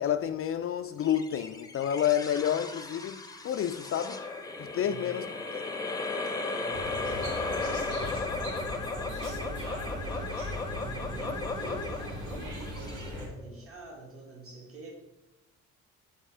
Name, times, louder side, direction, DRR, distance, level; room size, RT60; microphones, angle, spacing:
voice 1, 0.0-4.2 4.6-5.6, left 9 dB, 50° left, 0.4 m, -30 dB
sound 1, 1.0-13.6, left 3 dB, 10° left, 0.7 m, -36 dB
voice 2, 4.7-5.1 6.5-14.9, right 2 dB, 50° right, 2.1 m, -45 dB
sound 2, 6.7-13.3, equal, 80° right, 2.0 m, -39 dB
5.4 x 4.8 x 4.8 m
cardioid pair, 90°, 30 cm